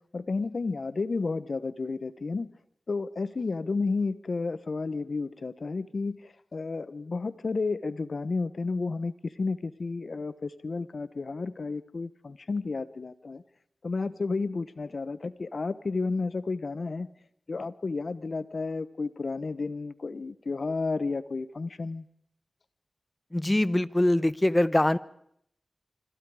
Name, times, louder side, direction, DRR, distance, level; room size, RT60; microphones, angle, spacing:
voice 1, 0.1-2.5 2.9-13.4 13.8-17.1 17.5-22.0, left 3 dB, 65° left, 15 dB, 1.1 m, -32 dB
voice 2, 23.3-25.0, left 1 dB, 20° left, 17 dB, 0.9 m, -23 dB
26.5 x 26.0 x 5.0 m, 0.72 s
cardioid pair, 45°, 0 cm